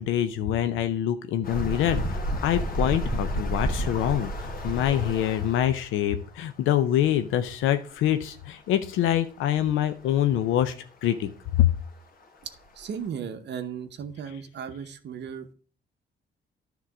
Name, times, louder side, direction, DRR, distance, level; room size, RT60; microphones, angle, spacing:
voice 1, 0.0-10.7 11.0-11.3 11.6-11.7, left 11 dB, 90° left, 10 dB, 0.6 m, -25 dB
sound 1, 1.4-5.8 7.7-7.8 8.0-8.1 9.0-9.1 11.6-11.7 12.2-12.3 12.8-13.0, equal, 45° left, 1.7 m, -30 dB
voice 2, 12.8-15.5, right 7 dB, 60° right, 7 dB, 0.9 m, -36 dB
10.0 x 3.8 x 5.9 m, 0.42 s
cardioid pair, 90°, 20 cm